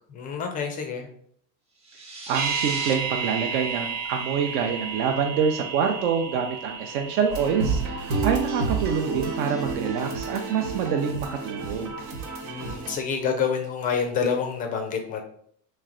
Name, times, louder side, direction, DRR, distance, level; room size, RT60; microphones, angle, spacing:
voice 1, 0.1-1.1 12.4-15.2, left 6 dB, 20° left, 4 dB, 0.3 m, -27 dB
sound 1, 1.8-2.9, right 2 dB, 15° right, 0.6 m, -36 dB
sound 2, 2.3-12.4 12.7-12.8, right 6 dB, 50° right, 1.1 m, -34 dB
voice 2, 2.3-12.0, right 7 dB, 70° right, 4 dB, 0.6 m, -26 dB
sound 3, 7.3-12.9, right 3 dB, 90° right, 1.3 m, -30 dB
3.2 x 3.2 x 3.7 m, 0.63 s
supercardioid pair, 125°, 47 cm